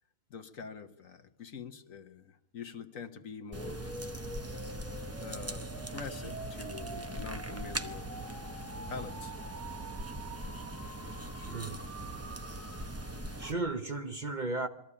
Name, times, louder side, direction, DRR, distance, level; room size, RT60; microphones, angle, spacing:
voice 1, 0.3-3.9 5.2-8.5 8.9-9.3, left 5 dB, 60° left, 6 dB, 1.5 m, -45 dB
sound 1, 3.5-13.5, right 1 dB, 15° right, 0.7 m, -41 dB
sound 2, 3.5-13.4, right 1 dB, 60° right, 3.5 m, -47 dB
voice 2, 11.3-11.8 13.4-14.7, right 2 dB, 35° right, 6 dB, 1.0 m, -35 dB
22.5 x 14.0 x 9.9 m, 0.84 s
omnidirectional pair, 1.6 m